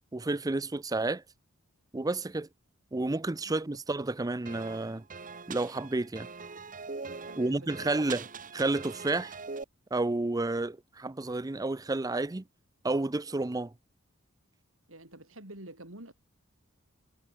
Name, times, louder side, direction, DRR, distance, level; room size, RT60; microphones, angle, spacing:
voice 1, 0.1-1.2 1.9-2.5 2.9-5.0 5.5-6.3 7.4-8.3 8.5-9.4 9.9-12.4 12.8-13.7, right 2 dB, 20° right, 0.5 m, -30 dB
sound 1, 4.5-9.6, right 4 dB, 40° right, 1.7 m, -42 dB
voice 2, 7.1-7.9 14.9-16.1, right 1 dB, 70° right, 7.6 m, -48 dB
head